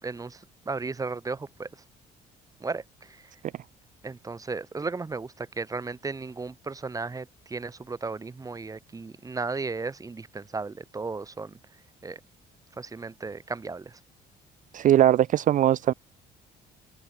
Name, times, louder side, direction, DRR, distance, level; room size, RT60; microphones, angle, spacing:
voice 1, 0.0-1.7 2.6-3.3 4.0-11.6 12.0-12.2 12.8-14.0, right 4 dB, 20° right, 2.0 m, -35 dB
voice 2, 14.7-15.9, right 12 dB, 50° right, 0.6 m, -20 dB
open air
cardioid pair, 110°, 17 cm